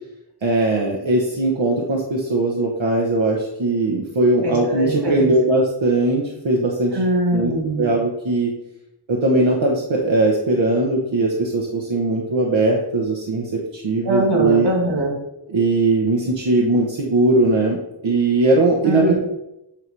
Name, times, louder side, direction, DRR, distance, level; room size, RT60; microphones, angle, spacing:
voice 1, 0.4-6.9 7.3-7.5 7.8-8.5 9.1-13.4 13.8-14.7 15.5-16.2 16.5-17.8 18.0-19.2, right 2 dB, 85° right, -1 dB, 1.1 m, -19 dB
voice 2, 4.4-5.3 6.9-7.9 14.0-15.1 18.8-19.2, right 1 dB, 65° right, 0 dB, 2.3 m, -21 dB
8.9 x 3.3 x 5.3 m, 0.89 s
wide cardioid pair, 65°, 44 cm